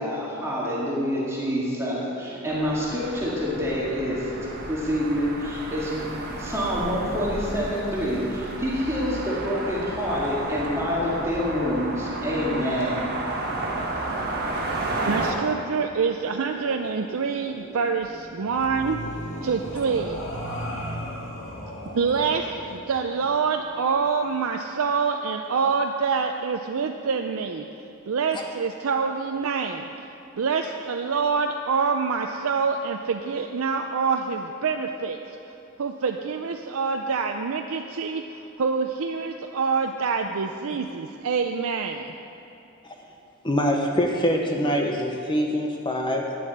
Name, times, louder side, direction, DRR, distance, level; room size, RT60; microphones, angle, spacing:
voice 1, 0.0-4.3 4.7-6.1 6.4-13.1, equal, 15° right, -7 dB, 2.1 m, -27 dB
sound 1, 2.5-15.3, right 2 dB, 45° right, 1.4 m, -32 dB
voice 2, 15.0-19.0 19.4-20.2 21.9-27.7 28.1-30.1 30.3-35.2 35.8-42.1, right 5 dB, 70° right, 4 dB, 0.5 m, -26 dB
sound 2, 15.5-24.4, equal, 70° left, 2.0 m, -38 dB
voice 3, 43.4-46.4, equal, 20° left, 1 dB, 0.8 m, -24 dB
10.0 x 7.3 x 8.0 m, 2.8 s
head